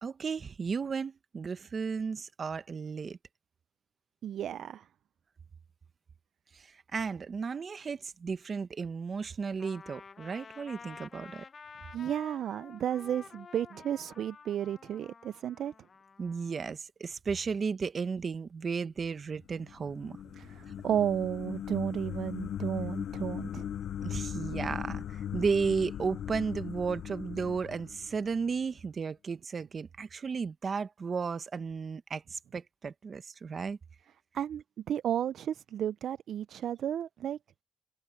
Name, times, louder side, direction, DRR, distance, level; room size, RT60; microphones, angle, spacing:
voice 1, 0.0-3.2 6.5-11.4 16.2-20.2 23.5-23.7 24.0-33.8, right 5 dB, 40° right, 1.2 m, -34 dB
voice 2, 4.2-4.9 11.9-15.7 20.4-23.7 34.3-37.4, right 10 dB, 65° right, 0.3 m, -33 dB
Trumpet, 9.6-16.7, left 5 dB, 40° left, 0.8 m, -51 dB
sound 1, 19.4-28.6, left 10 dB, 65° left, 0.5 m, -39 dB
open air
cardioid pair, 90°, 0 cm